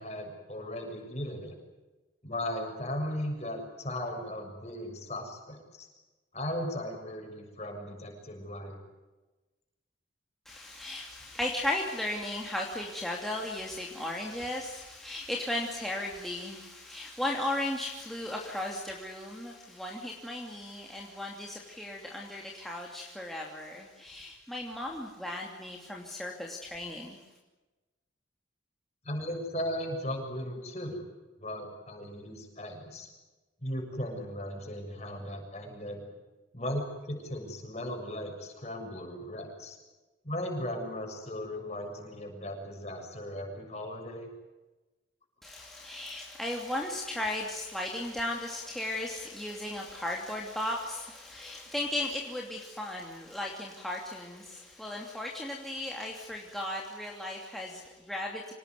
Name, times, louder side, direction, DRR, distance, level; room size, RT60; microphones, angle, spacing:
voice 1, 0.0-1.6 2.2-5.9 6.3-8.8 29.1-31.1 31.4-33.1 33.6-36.0 36.5-39.8 40.2-44.3, left 1 dB, 35° left, 2 dB, 7.0 m, -37 dB
voice 2, 10.5-27.2 45.4-58.5, left 1 dB, ahead, -2 dB, 2.8 m, -36 dB
26.0 x 19.5 x 9.6 m, 1.1 s
head